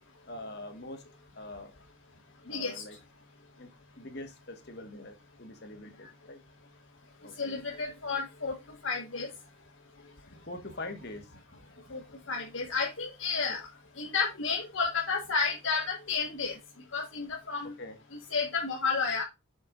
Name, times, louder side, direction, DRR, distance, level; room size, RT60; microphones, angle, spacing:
voice 1, 0.2-1.0 1.3-1.7 2.5-3.0 3.6-3.7 4.0-6.4 7.2-7.6 10.3-11.3 13.5-13.6 17.8-18.0, left 2 dB, 50° left, 6 dB, 1.6 m, -43 dB
voice 2, 2.5-2.8 7.4-8.5 8.8-9.3 11.9-12.0 12.3-13.6 14.0-16.6 16.9-17.7 18.3-19.2, left 5 dB, 70° left, -1 dB, 1.5 m, -31 dB
8.3 x 6.7 x 2.5 m, 0.24 s
head